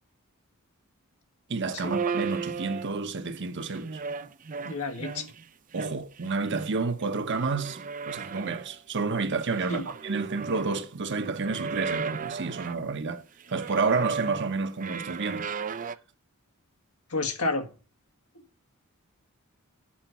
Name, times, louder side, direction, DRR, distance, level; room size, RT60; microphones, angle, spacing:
voice 1, 1.5-4.0 5.7-7.8 8.1-13.2 13.5-15.5, right 4 dB, 55° right, 1.0 m, -30 dB
sound 1, 1.8-3.2 3.7-5.4 5.7-7.0 7.3-8.8 9.3-10.9 11.2-12.9 13.4-16.0, right 5 dB, 35° right, 0.5 m, -35 dB
voice 2, 4.6-5.3 9.7-9.8 17.1-17.7, left 3 dB, 85° left, 1.8 m, -30 dB
8.7 x 5.1 x 7.3 m
head